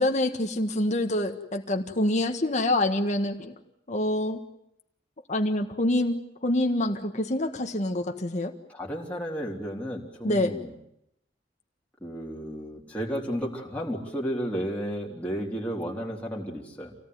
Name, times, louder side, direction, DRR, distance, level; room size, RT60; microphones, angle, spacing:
voice 1, 0.0-3.6 3.9-4.4 5.3-8.5 10.2-10.6, left 1 dB, 40° left, 5 dB, 1.6 m, -26 dB
voice 2, 8.7-10.7 12.0-17.0, equal, 10° left, -3 dB, 3.4 m, -33 dB
27.0 x 18.0 x 9.5 m, 0.79 s
head